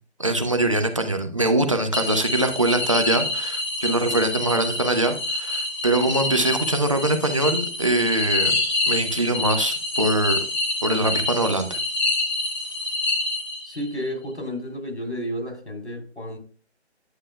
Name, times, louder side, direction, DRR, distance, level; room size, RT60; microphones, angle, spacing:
voice 1, 0.2-8.6 8.9-10.4 10.8-11.8, right 1 dB, 30° right, 0.6 m, -23 dB
sound 1, 1.9-13.9, left 2 dB, 40° left, 1.7 m, -27 dB
voice 2, 13.6-16.4, equal, 80° left, 3.0 m, -31 dB
9.9 x 6.5 x 2.2 m
figure-of-eight pair, 150°, 33 cm